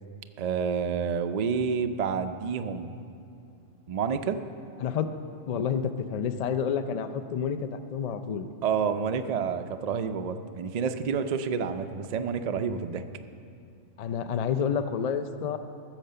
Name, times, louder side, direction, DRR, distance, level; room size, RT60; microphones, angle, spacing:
voice 1, 0.4-2.9 3.9-4.4 8.6-13.0, right 6 dB, 65° right, 8 dB, 0.4 m, -29 dB
voice 2, 4.8-5.2 5.5-8.5 14.0-15.6, left 7 dB, 70° left, 8 dB, 0.3 m, -29 dB
15.0 x 6.5 x 6.7 m, 2.5 s
omnidirectional pair, 1.3 m